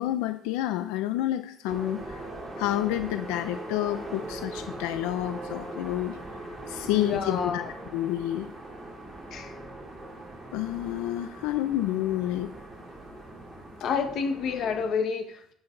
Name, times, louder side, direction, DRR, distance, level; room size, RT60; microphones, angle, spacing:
voice 1, 0.0-2.3 2.6-6.2 6.7-7.6 7.9-8.5 10.5-12.5, left 13 dB, 85° left, 9 dB, 0.6 m, -29 dB
sound 1, 1.7-14.9, right 1 dB, 15° right, 2.9 m, -40 dB
voice 2, 6.9-7.7 9.3-9.5 13.8-15.5, left 6 dB, 45° left, 6 dB, 1.4 m, -29 dB
11.0 x 8.0 x 3.9 m, 0.67 s
cardioid pair, 160°, 0 cm